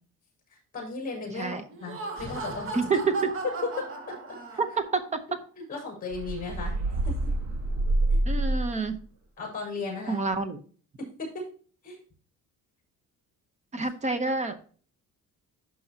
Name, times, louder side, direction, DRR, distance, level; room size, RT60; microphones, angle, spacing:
voice 1, 0.5-2.7 3.8-4.1 4.5-4.6 5.6-6.8 7.0-7.3 8.1-8.2 9.4-10.2 11.0-11.3 11.8-12.0, left 3 dB, 30° left, -1 dB, 4.8 m, -36 dB
Laughter, 1.7-5.0, right 3 dB, 45° right, 2.0 m, -36 dB
voice 2, 2.7-3.3 4.6-5.2 8.3-9.0 10.1-10.6 13.7-14.6, right 4 dB, 25° right, 10 dB, 0.9 m, -28 dB
sound 1, 6.1-8.9, right 2 dB, 65° right, 1.6 m, -27 dB
11.5 x 6.3 x 2.9 m, 0.42 s
cardioid pair, 165°, 30 cm